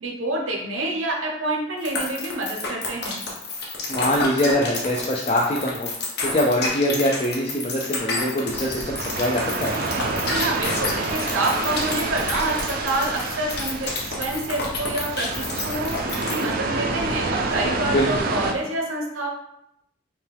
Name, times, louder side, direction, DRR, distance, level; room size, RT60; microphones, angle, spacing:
voice 1, 0.0-3.2 10.2-16.0 16.3-19.3, right 2 dB, 90° right, 0 dB, 0.8 m, -27 dB
sound 1, 1.8-16.5, left 3 dB, 55° left, 1.0 m, -29 dB
voice 2, 3.9-5.9 6.2-9.7 17.9-18.3, left 1 dB, 30° left, -2 dB, 0.4 m, -23 dB
sound 2, 8.5-18.5, right 3 dB, 50° right, 0.4 m, -28 dB
5.6 x 2.3 x 3.4 m, 0.80 s
head